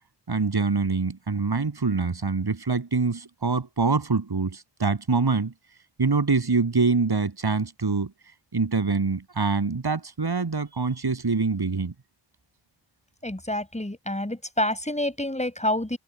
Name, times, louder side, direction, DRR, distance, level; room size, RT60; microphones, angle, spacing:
voice 1, 0.3-5.5 6.0-8.1 8.5-11.9, right 4 dB, 60° right, 7.6 m, -25 dB
voice 2, 13.2-16.0, left 1 dB, 15° left, 7.2 m, -28 dB
cardioid pair, 45°, 44 cm